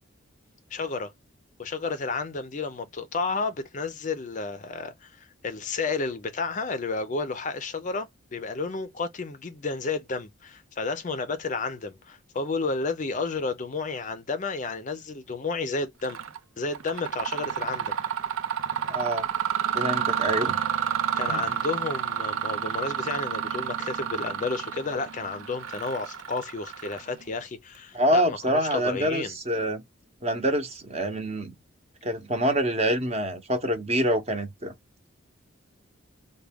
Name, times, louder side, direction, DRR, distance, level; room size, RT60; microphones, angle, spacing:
voice 1, 0.7-1.1 1.6-16.2 16.6-17.9 21.2-29.3, left 4 dB, 40° left, 0.5 m, -31 dB
Mechanisms, 16.0-16.4 16.7-27.3, right 8 dB, 85° right, 0.5 m, -30 dB
voice 2, 18.9-19.3 19.7-20.5 21.2-21.4 27.9-29.8 30.2-31.5 32.0-34.7, equal, 30° right, 0.8 m, -26 dB
3.4 x 2.2 x 3.4 m
head